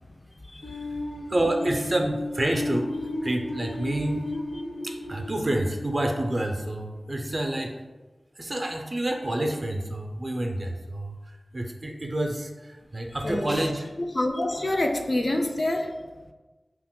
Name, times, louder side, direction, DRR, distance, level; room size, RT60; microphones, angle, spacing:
voice 1, 0.4-1.0 13.2-13.7 14.1-16.1, left 1 dB, 45° left, 0.3 m, -27 dB
sound 1, 0.6-7.5, left 2 dB, 75° left, 1.0 m, -35 dB
voice 2, 1.3-2.9 3.2-4.3 4.8-7.7 8.4-11.1 11.5-13.9 14.7-14.8, right 1 dB, 45° right, 0.4 m, -28 dB
2.8 x 2.1 x 3.6 m
cardioid pair, 45°, 0 cm